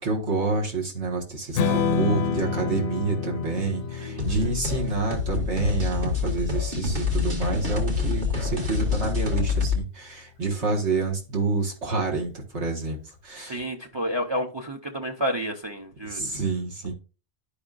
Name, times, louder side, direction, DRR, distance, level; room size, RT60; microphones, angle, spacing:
voice 1, 0.0-13.6 16.0-16.9, right 3 dB, 85° right, 2.0 m, -28 dB
Strum, 1.5-7.8, left 5 dB, 65° left, 0.7 m, -30 dB
sound 1, 4.2-9.8, left 5 dB, 45° right, 1.6 m, -27 dB
voice 2, 13.4-16.2, equal, 30° right, 0.6 m, -30 dB
11.5 x 5.2 x 2.5 m
omnidirectional pair, 1.1 m